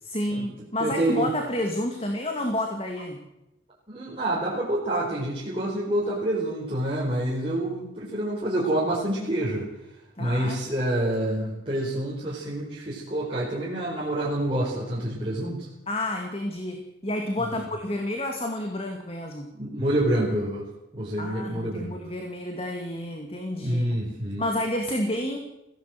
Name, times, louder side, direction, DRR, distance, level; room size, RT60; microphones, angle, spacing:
voice 1, 0.0-3.2 10.2-10.6 15.9-19.5 21.2-24.0 24.4-25.4, left 1 dB, 30° left, 3 dB, 2.4 m, -30 dB
voice 2, 0.8-1.3 3.9-9.7 10.2-15.7 17.4-17.5 19.5-20.7 20.9-22.0 23.6-24.5, right 1 dB, 30° right, -6 dB, 4.7 m, -27 dB
22.0 x 16.5 x 7.8 m, 0.93 s
head